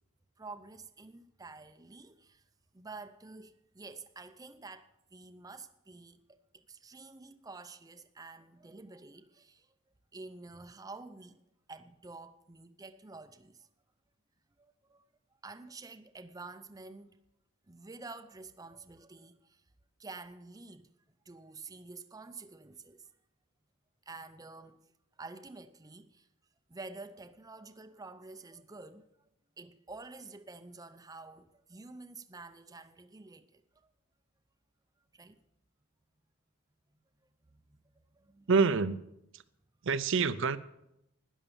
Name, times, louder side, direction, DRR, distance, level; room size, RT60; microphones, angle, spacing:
voice 1, 0.4-2.4 2.7-9.7 10.1-11.4 11.7-13.7 14.6-15.0 15.4-17.2 17.7-19.6 20.0-20.9 21.3-23.1 24.1-24.9 25.2-26.3 26.7-29.3 29.6-33.9 35.1-35.4 36.9-37.0 37.5-38.5, right 3 dB, 15° right, 0.5 m, -49 dB
voice 2, 38.5-39.0 39.3-39.4 39.8-40.6, right 4 dB, 60° right, 0.6 m, -27 dB
12.5 x 10.0 x 7.0 m
head